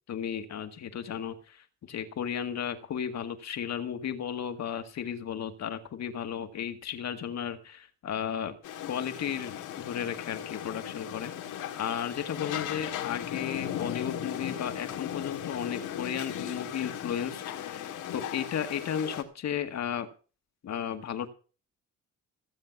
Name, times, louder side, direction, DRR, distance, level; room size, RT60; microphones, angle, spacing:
voice 1, 0.1-8.6 8.9-20.1 20.6-21.3, left 8 dB, 60° left, 7 dB, 1.9 m, -34 dB
sound 1, 8.6-19.2, left 10 dB, 85° left, 2.1 m, -37 dB
16.0 x 7.6 x 6.0 m, 0.37 s
cardioid pair, 90°, 30 cm